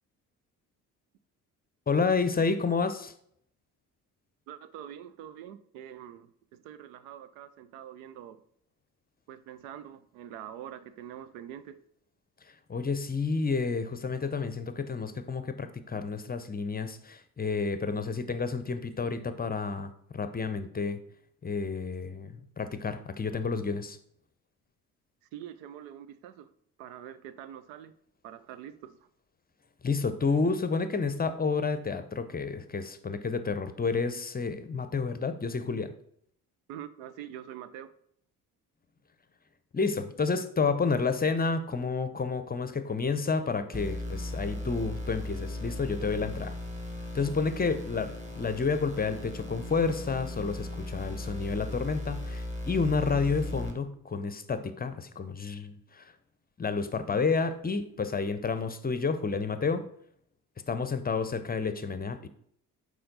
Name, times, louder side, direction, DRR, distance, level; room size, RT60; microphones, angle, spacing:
voice 1, 1.9-3.1 12.7-21.0 21.4-24.0 29.8-35.9 39.7-46.5 47.1-56.1 56.6-59.9 60.7-62.3, left 4 dB, 20° left, 11 dB, 0.7 m, -30 dB
voice 2, 4.5-8.4 9.3-11.8 25.3-26.5 26.8-27.9 28.2-29.1 36.7-37.9, right 10 dB, 70° right, 14 dB, 0.6 m, -45 dB
sound 1, 43.7-53.7, left 1 dB, 15° right, 1.8 m, -37 dB
7.8 x 5.1 x 3.9 m, 0.68 s
hypercardioid pair, 50°, 45 cm